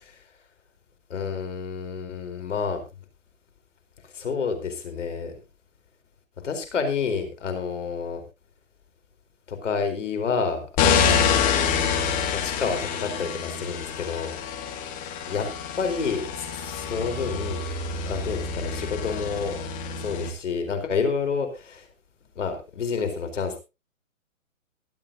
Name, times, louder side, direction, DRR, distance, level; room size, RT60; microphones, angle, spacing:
voice 1, 1.1-2.8 4.0-5.3 6.4-8.2 9.5-10.6 11.0-14.3 14.7-14.9 15.3-15.5 15.8-17.6 18.1-19.6 20.0-21.9 22.4-23.6, left 5 dB, 60° left, 7 dB, 4.4 m, -29 dB
sound 1, 10.8-20.3, left 6 dB, 20° left, 2.2 m, -27 dB
22.5 x 8.8 x 2.8 m, 0.27 s
figure-of-eight pair, 140°, 41 cm